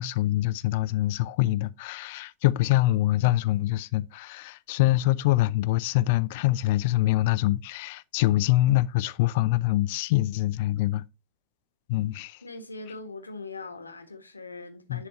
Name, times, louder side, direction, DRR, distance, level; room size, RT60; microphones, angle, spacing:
voice 1, 0.0-11.0 11.9-12.4 14.9-15.0, left 16 dB, 50° left, 0.4 m, -24 dB
voice 2, 12.4-15.1, left 3 dB, 80° left, 1.3 m, -41 dB
10.5 x 4.0 x 3.1 m
figure-of-eight pair, 90°, 0 cm